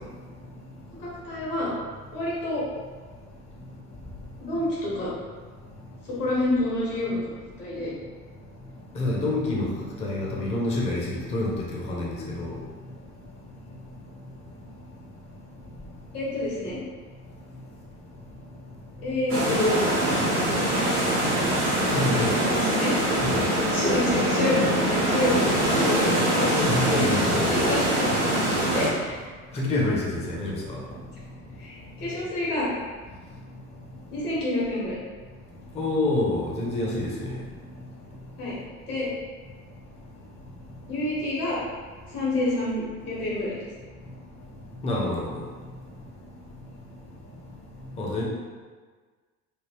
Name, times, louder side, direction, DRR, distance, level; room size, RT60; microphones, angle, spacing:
voice 1, 1.0-1.7 2.1-2.6 4.4-5.1 6.1-7.2 7.6-7.9 16.1-16.8 19.0-19.8 22.3-22.9 23.7-26.5 27.3-28.1 28.7-29.2 31.6-32.7 34.1-35.0 38.4-38.6 38.9-39.1 40.9-41.6 42.1-43.5, left 1 dB, 75° left, -7 dB, 1.5 m, -28 dB
voice 2, 9.0-9.7 10.0-12.6 21.9-22.6 23.2-23.5 26.6-27.6 29.5-30.8 35.7-37.4 44.8-45.3 48.0-48.2, left 2 dB, 15° left, -4 dB, 0.6 m, -27 dB
sound 1, 19.3-28.9, right 1 dB, 85° right, 1.0 m, -23 dB
3.4 x 2.3 x 2.9 m, 1.5 s
figure-of-eight pair, 65°, 45 cm